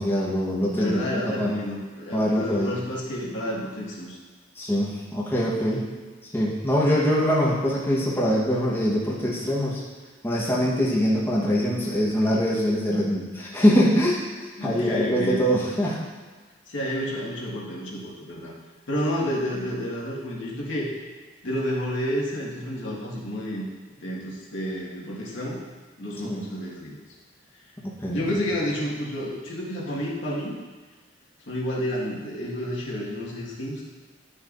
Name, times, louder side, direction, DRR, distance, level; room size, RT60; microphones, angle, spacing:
voice 1, 0.0-1.0 1.4-1.5 2.1-2.7 4.6-5.8 6.3-9.8 10.2-14.2 14.6-16.0 26.2-26.4 28.0-28.2, equal, 10° left, -6 dB, 1.2 m, -23 dB
voice 2, 0.8-4.2 14.6-15.4 16.7-18.5 18.9-20.9 21.4-23.7 24.0-25.6 26.0-27.0 28.1-30.6 31.5-33.9, equal, 70° left, -5 dB, 1.7 m, -30 dB
11.0 x 6.5 x 2.6 m, 1.4 s
head